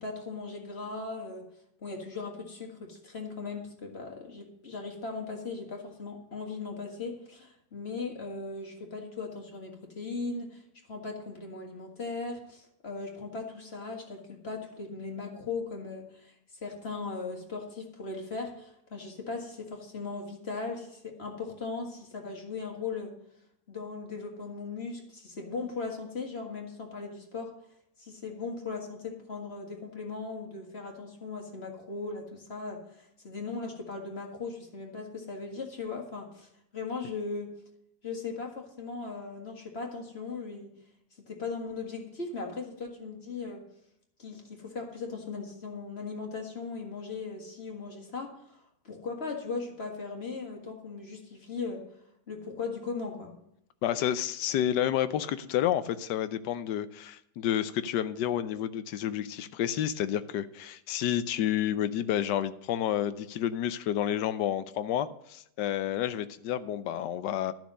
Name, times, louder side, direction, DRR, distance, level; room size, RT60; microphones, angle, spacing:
voice 1, 0.0-1.5 1.8-10.6 10.9-16.3 16.6-23.2 23.7-27.5 28.0-37.5 38.0-40.7 41.3-43.7 44.2-51.9 52.3-53.3, left 4 dB, 40° left, 1 dB, 1.9 m, -38 dB
voice 2, 53.8-67.5, left 11 dB, 85° left, 14 dB, 1.3 m, -30 dB
12.0 x 6.2 x 6.3 m, 0.77 s
omnidirectional pair, 1.9 m